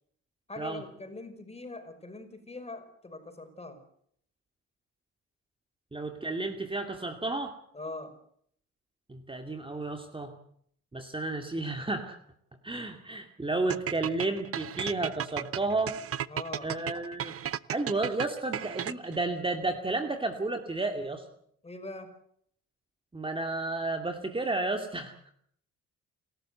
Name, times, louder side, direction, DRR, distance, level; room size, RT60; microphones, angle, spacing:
voice 1, 0.5-3.8 7.7-8.1 16.3-16.7 21.6-22.1, left 2 dB, 20° left, 7 dB, 5.8 m, -42 dB
voice 2, 5.9-7.6 9.1-10.3 10.9-12.2 12.6-16.0 16.6-17.3 17.7-21.2 23.1-25.4, right 2 dB, 15° right, 5 dB, 2.4 m, -32 dB
sound 1, 13.7-19.2, right 9 dB, 50° right, 0.8 m, -34 dB
29.5 x 13.0 x 7.9 m, 0.65 s
cardioid pair, 90°, 30 cm